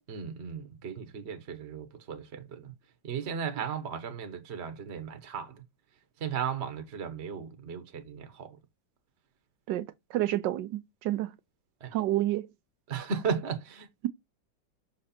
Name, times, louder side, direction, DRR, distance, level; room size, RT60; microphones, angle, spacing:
voice 1, 0.1-2.7 3.0-5.6 6.2-8.6 11.8-12.0 12.9-13.9, right 6 dB, 40° right, 1.2 m, -36 dB
voice 2, 10.1-11.3 11.9-12.5, right 14 dB, 75° right, 1.3 m, -29 dB
6.1 x 4.3 x 4.2 m
omnidirectional pair, 2.0 m